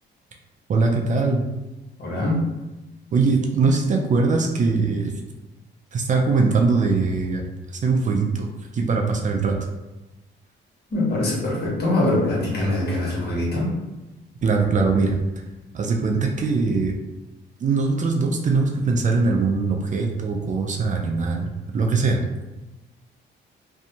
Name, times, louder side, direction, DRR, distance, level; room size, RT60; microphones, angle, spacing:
voice 1, 0.7-1.4 3.1-5.1 5.9-7.4 7.8-8.5 8.7-9.6 14.4-15.2 15.7-16.9 17.6-22.2, right 4 dB, 40° right, 2 dB, 0.4 m, -21 dB
voice 2, 2.0-2.5 10.9-13.7, left 1 dB, 55° left, -5 dB, 1.2 m, -23 dB
2.6 x 2.2 x 2.8 m, 1.1 s
cardioid pair, 90°, 20 cm